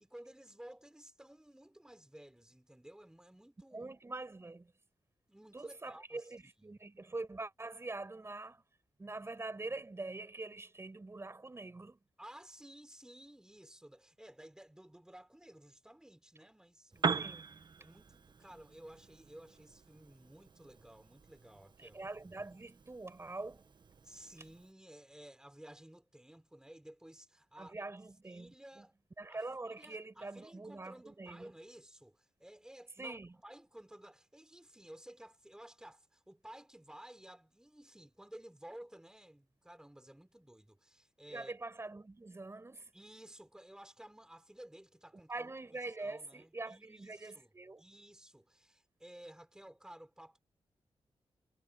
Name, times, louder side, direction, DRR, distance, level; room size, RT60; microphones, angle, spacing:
voice 1, 0.0-3.9 5.3-6.3 6.6-6.8 12.2-17.2 17.8-22.0 24.0-27.7 28.2-28.9 29.3-41.5 42.9-47.5 47.8-50.4, right 1 dB, 5° right, 4.8 m, -55 dB
voice 2, 3.7-4.7 5.5-8.6 9.0-12.0 17.1-17.4 21.8-23.6 27.6-28.8 29.2-31.5 33.0-33.3 41.3-42.9 45.3-47.8, right 2 dB, 25° right, 5.1 m, -44 dB
Piano, 16.9-24.7, right 5 dB, 50° right, 1.4 m, -42 dB
wide cardioid pair, 105°, 10 cm